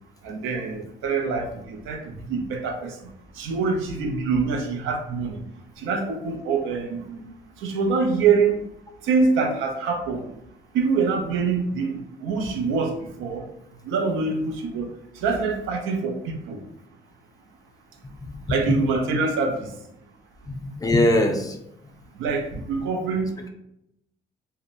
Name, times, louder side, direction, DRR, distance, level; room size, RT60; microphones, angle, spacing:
voice 1, 0.2-2.0 2.3-2.9 3.4-5.4 5.8-7.2 7.6-8.6 9.0-10.2 10.7-13.5 13.9-14.9 15.2-16.6 18.5-19.7 22.2-23.4, right 4 dB, 85° right, 3 dB, 0.5 m, -25 dB
voice 2, 18.2-18.8 20.5-21.6, left 1 dB, 20° left, 3 dB, 0.4 m, -22 dB
2.7 x 2.0 x 2.5 m, 0.80 s
cardioid pair, 90°, 20 cm